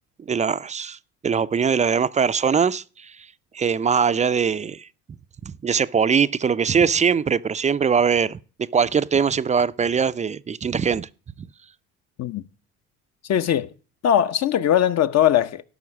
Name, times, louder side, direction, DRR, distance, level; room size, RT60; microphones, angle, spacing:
voice 1, 0.3-1.0 1.2-3.1 3.5-4.9 5.6-8.4 8.7-11.1 11.4-11.5, right 6 dB, 20° right, 0.4 m, -21 dB
voice 2, 13.3-13.7 14.0-15.6, left 10 dB, 50° left, 0.8 m, -20 dB
12.0 x 5.7 x 6.1 m
supercardioid pair, 70°, 34 cm